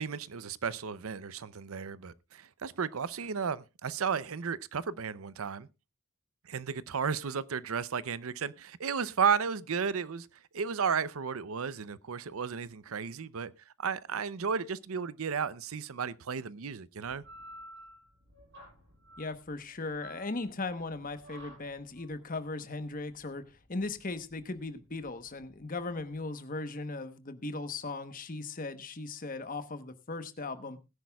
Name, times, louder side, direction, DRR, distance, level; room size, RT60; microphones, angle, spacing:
voice 1, 0.0-5.7 6.5-10.3 10.5-13.5 13.8-17.2, right 6 dB, 70° right, 0.6 m, -33 dB
sound 1, 17.2-26.2, equal, 55° right, 5.6 m, -53 dB
voice 2, 19.2-30.8, left 3 dB, 40° left, 1.0 m, -38 dB
20.5 x 10.5 x 2.3 m
head